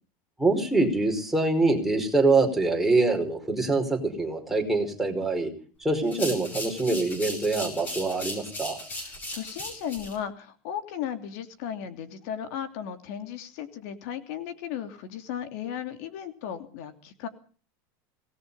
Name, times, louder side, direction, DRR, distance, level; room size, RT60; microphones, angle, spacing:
voice 1, 0.4-5.5 5.8-8.8, right 3 dB, 5° right, 2 dB, 4.9 m, -24 dB
sound 1, 6.0-10.2, left 1 dB, 15° left, 7.6 m, -37 dB
voice 2, 8.9-17.3, left 9 dB, 60° left, 8 dB, 2.9 m, -36 dB
26.0 x 19.0 x 5.6 m, 0.42 s
supercardioid pair, 175°, 10 cm